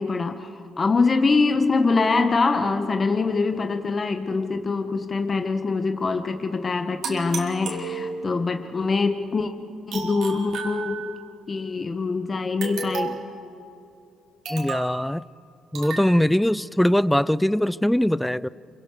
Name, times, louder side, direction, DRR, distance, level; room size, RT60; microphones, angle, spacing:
voice 1, 0.0-9.5 9.9-11.2 11.5-13.2, left 4 dB, 35° left, 1.5 m, -24 dB
sound 1, 7.0-8.4 9.9-11.3 12.6-13.4 14.4-15.0 15.7-16.1, right 4 dB, 75° right, 4.3 m, -33 dB
voice 2, 14.5-15.2 15.7-18.5, equal, 5° left, 0.5 m, -21 dB
28.0 x 25.0 x 6.7 m
cardioid pair, 90°, 0 cm